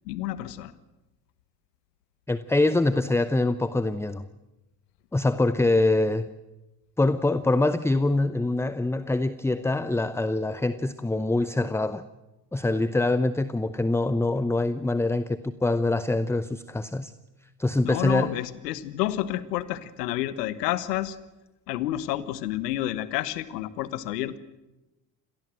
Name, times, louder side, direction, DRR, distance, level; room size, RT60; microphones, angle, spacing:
voice 1, 0.0-0.7 17.8-21.2 21.7-24.4, left 14 dB, 85° left, 16 dB, 1.3 m, -29 dB
voice 2, 2.3-4.2 5.1-6.3 7.0-12.1 12.5-17.1 17.6-18.3, left 2 dB, 5° left, 14 dB, 0.8 m, -24 dB
26.0 x 18.5 x 7.7 m, 1.0 s
hypercardioid pair, 70°, 47 cm